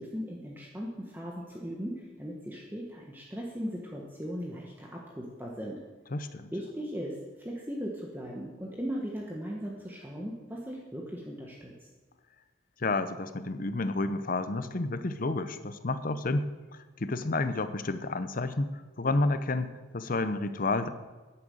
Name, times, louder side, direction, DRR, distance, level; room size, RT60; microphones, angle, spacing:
voice 1, 0.0-5.8 6.5-11.7, equal, 10° right, -2 dB, 1.3 m, -38 dB
voice 2, 6.1-6.5 12.8-16.5 17.0-18.7 19.0-20.9, left 2 dB, 45° left, 11 dB, 0.7 m, -30 dB
10.5 x 8.8 x 7.8 m, 1.3 s
head